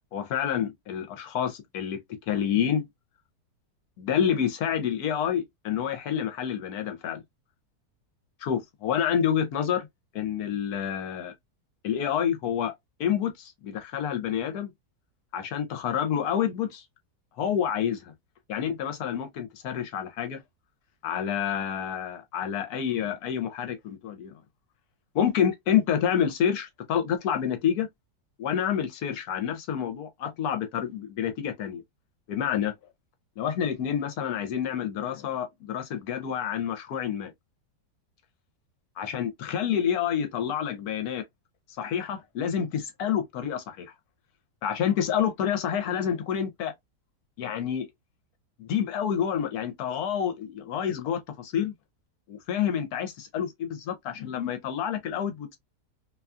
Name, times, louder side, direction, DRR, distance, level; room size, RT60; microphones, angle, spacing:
voice 1, 0.1-2.0 2.3-2.9 4.0-7.2 8.4-9.9 10.1-11.3 11.8-12.7 13.0-14.7 15.3-16.8 17.4-18.1 18.5-20.4 21.0-24.3 25.1-27.9 28.4-31.8 32.3-32.7 33.4-37.3 39.0-41.2 41.8-43.9 44.6-46.7 47.4-47.9 48.6-51.7 52.3-55.6, left 8 dB, 70° left, 1.0 m, -28 dB
2.9 x 2.3 x 2.3 m
omnidirectional pair, 1.8 m